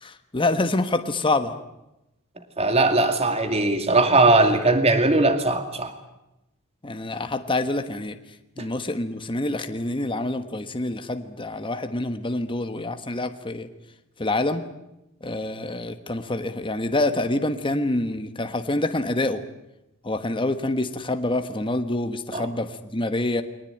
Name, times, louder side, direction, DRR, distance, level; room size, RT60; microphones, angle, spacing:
voice 1, 0.0-1.5 6.8-8.2 8.6-13.7 14.2-14.6 15.2-19.4 20.0-23.4, left 2 dB, 20° left, 8 dB, 1.3 m, -26 dB
voice 2, 2.6-5.9 22.3-22.5, right 2 dB, 30° right, 8 dB, 2.4 m, -19 dB
23.5 x 19.0 x 9.0 m, 0.91 s
head